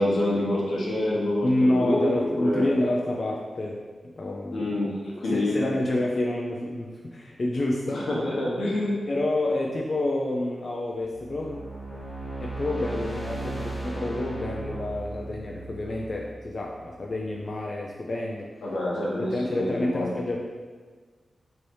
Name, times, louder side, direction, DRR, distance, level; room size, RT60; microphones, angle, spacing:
voice 1, 0.0-2.6 4.5-4.9 5.2-5.6 7.9-9.0 18.6-20.1, left 1 dB, 85° left, -5 dB, 1.0 m, -27 dB
voice 2, 1.4-3.8 4.2-4.7 5.3-8.1 9.1-11.7 12.4-18.5 19.1-20.4, left 1 dB, 45° left, -1 dB, 0.4 m, -28 dB
sound 1, 11.0-17.2, right 2 dB, 10° right, 1.4 m, -36 dB
3.2 x 2.7 x 4.5 m, 1.5 s
wide cardioid pair, 110°, 0 cm